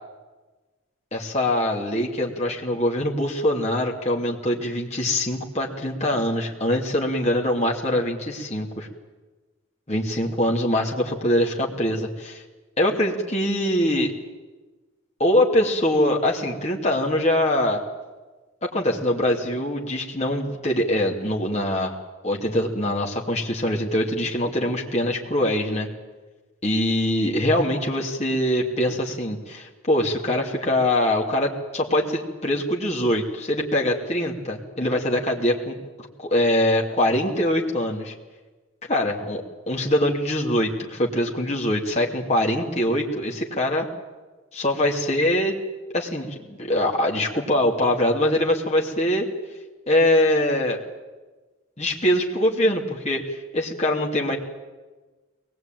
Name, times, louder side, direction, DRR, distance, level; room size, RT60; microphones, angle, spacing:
voice 1, 1.1-8.9 9.9-12.4 12.8-14.1 15.2-17.8 18.6-21.9 22.2-25.9 26.6-38.1 38.9-43.9 44.5-45.6 45.9-49.3 49.9-50.8 51.8-54.4, left 1 dB, 30° left, 0 dB, 2.6 m, -23 dB
22.5 x 19.5 x 9.1 m, 1.2 s
head